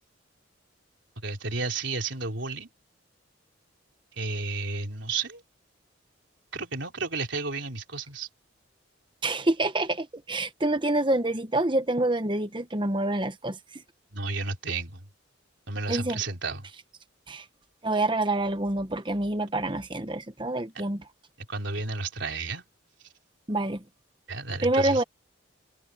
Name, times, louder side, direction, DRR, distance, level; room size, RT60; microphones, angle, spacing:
voice 1, 1.2-2.7 4.2-5.4 6.5-8.3 14.1-15.0 15.7-16.6 20.8-20.9 21.5-22.6 24.3-25.0, right 3 dB, 65° right, 3.7 m, -32 dB
voice 2, 9.2-13.8 15.9-16.2 17.3-17.4 17.8-21.0 23.5-23.8 24.6-25.0, right 2 dB, 25° right, 1.2 m, -27 dB
open air
head